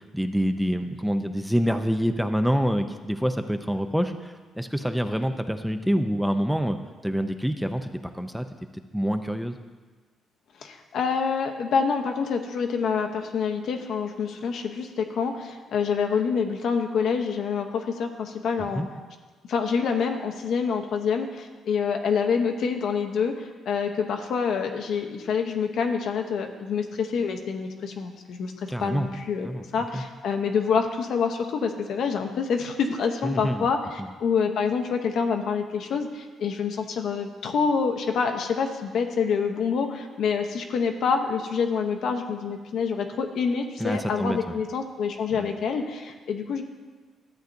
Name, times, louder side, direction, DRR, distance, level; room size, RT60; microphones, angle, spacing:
voice 1, 0.0-6.8 7.0-7.9 8.2-8.5 8.9-9.6 18.6-18.9 28.7-29.1 29.4-29.6 29.9-30.0 33.2-33.7 34.0-34.1 43.8-44.6 45.3-45.5, equal, ahead, 7 dB, 0.5 m, -26 dB
voice 2, 10.6-18.8 19.5-29.5 29.7-46.6, left 6 dB, 70° left, 5 dB, 0.8 m, -27 dB
13.0 x 8.0 x 2.6 m, 1.4 s
cardioid pair, 90°, 0 cm